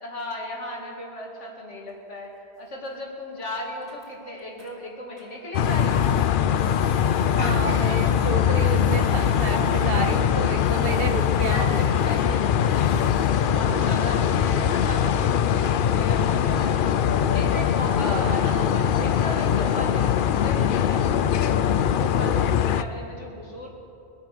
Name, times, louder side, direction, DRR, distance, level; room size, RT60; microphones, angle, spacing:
voice 1, 0.0-2.3 2.6-6.1 7.9-8.3 9.4-10.2 10.9-13.1 13.4-16.8 17.3-21.0 21.4-23.7, left 1 dB, 85° left, -1 dB, 2.8 m, -36 dB
Printer, 1.9-2.2 2.6-2.7 3.0-3.1 3.4-3.5 3.7-4.7 5.2-13.5, right 1 dB, 70° right, 3.2 m, -47 dB
sound 1, 5.5-22.8, left 8 dB, 60° left, 0.6 m, -22 dB
voice 2, 7.2-12.1 13.4-14.2 18.0-18.4, right 5 dB, 55° right, 9 dB, 1.0 m, -31 dB
23.5 x 8.4 x 6.7 m, 2.7 s
omnidirectional pair, 1.2 m